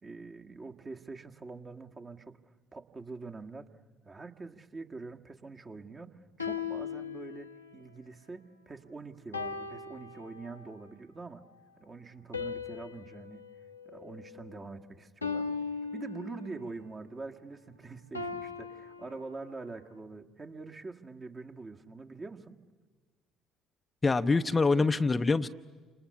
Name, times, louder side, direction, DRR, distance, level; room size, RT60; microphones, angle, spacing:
voice 1, 0.0-2.4 2.7-3.7 4.1-11.5 11.8-13.5 13.9-15.6 15.9-22.6, right 3 dB, 30° right, 4 dB, 1.7 m, -45 dB
sound 1, 6.4-7.8 9.3-10.7 12.3-14.7 15.2-16.7 18.1-19.7, left 5 dB, 85° left, 1.0 m, -39 dB
voice 2, 24.0-25.5, left 3 dB, 25° left, 10 dB, 0.7 m, -25 dB
29.5 x 27.0 x 6.9 m, 1.4 s
figure-of-eight pair, 50°, 0 cm